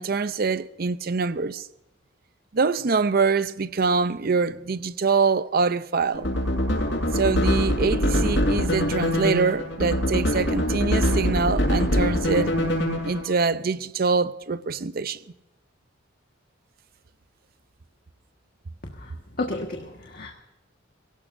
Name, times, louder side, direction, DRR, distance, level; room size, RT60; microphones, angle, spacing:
voice 1, 0.0-1.7 2.5-6.3 7.1-12.5 13.0-15.2, right 4 dB, 50° right, 0.6 m, -24 dB
sound 1, 6.1-13.2, equal, 65° left, 7.3 m, -23 dB
voice 2, 19.4-20.3, left 2 dB, 50° left, 1.6 m, -31 dB
23.0 x 17.5 x 2.6 m
head